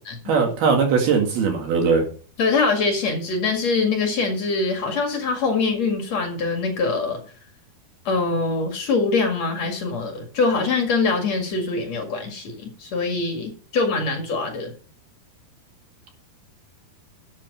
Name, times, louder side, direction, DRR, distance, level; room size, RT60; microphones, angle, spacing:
voice 1, 0.3-2.0, right 5 dB, 75° right, 3 dB, 4.0 m, -20 dB
voice 2, 2.4-7.2 8.1-14.7, left 4 dB, 50° left, 4 dB, 2.8 m, -23 dB
12.0 x 8.0 x 5.5 m, 0.41 s
omnidirectional pair, 4.5 m